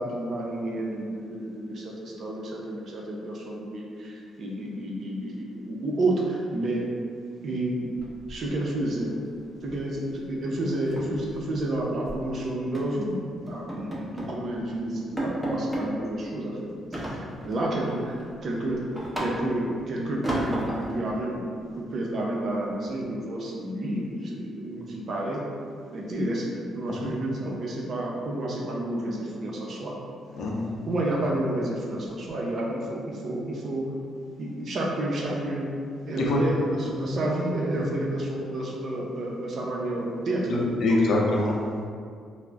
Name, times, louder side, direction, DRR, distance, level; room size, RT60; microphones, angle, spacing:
voice 1, 0.0-6.9 7.4-8.0 8.3-9.1 9.6-13.2 13.5-18.8 19.2-21.4 21.7-25.4 25.9-26.5 26.8-29.9 30.9-33.9 34.4-35.7 36.1-40.5 40.8-41.0, right 1 dB, 55° right, -2 dB, 0.5 m, -30 dB
sound 1, 8.0-8.8 9.1-9.3 9.7-9.9 10.2-10.3 10.7-12.2 12.7-13.0 13.5-14.4 14.7-14.8 15.2-15.9 16.9-17.7 18.1-19.7 20.2-21.0, right 1 dB, 10° right, 0.6 m, -33 dB
voice 2, 40.5-41.6, left 2 dB, 70° left, -2 dB, 0.5 m, -24 dB
2.4 x 2.0 x 3.3 m, 2.2 s
cardioid pair, 90°, 0 cm